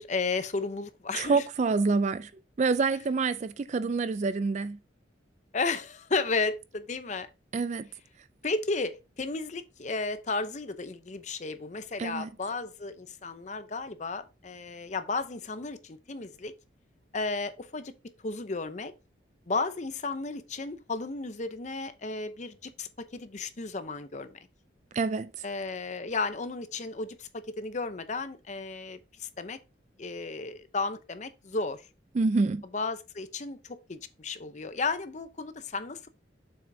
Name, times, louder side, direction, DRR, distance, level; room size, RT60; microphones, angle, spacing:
voice 1, 0.0-1.4 5.5-7.3 8.4-16.5 17.1-17.9 18.2-18.9 19.5-24.4 25.4-29.6 30.0-31.8 32.7-36.1, left 3 dB, 40° left, 0.7 m, -33 dB
voice 2, 1.1-2.3 2.6-4.8 7.5-7.9 12.0-12.3 24.9-25.3 32.1-32.6, right 4 dB, 40° right, 0.3 m, -27 dB
7.1 x 6.1 x 2.7 m
head